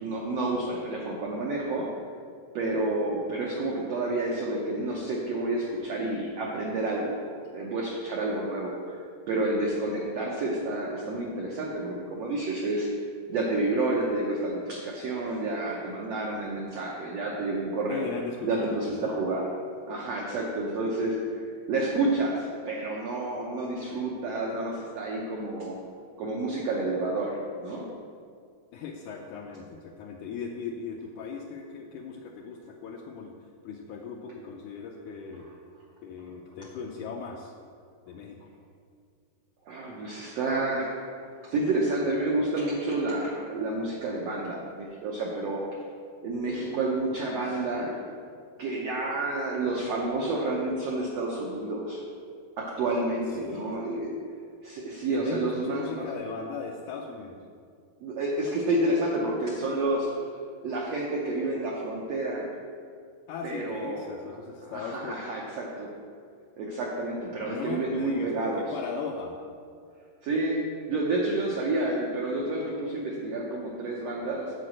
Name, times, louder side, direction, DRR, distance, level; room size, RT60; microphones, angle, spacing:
voice 1, 0.0-1.9 2.5-12.9 13.3-18.1 18.4-19.5 19.9-21.2 21.7-25.8 26.2-27.9 39.6-45.6 46.2-48.0 48.6-52.0 52.6-54.1 54.6-56.0 58.0-60.1 60.6-62.5 63.4-64.1 64.7-65.9 66.6-68.6 70.2-70.6 70.9-74.5, right 2 dB, 80° right, -3 dB, 1.4 m, -29 dB
voice 2, 17.9-19.3 28.7-33.4 33.6-35.5 36.0-37.5 38.1-38.5 53.4-53.7 55.1-57.4 63.3-65.2 67.4-69.4, left 5 dB, 80° left, 1 dB, 1.8 m, -38 dB
8.1 x 4.9 x 7.4 m, 2.2 s
omnidirectional pair, 4.1 m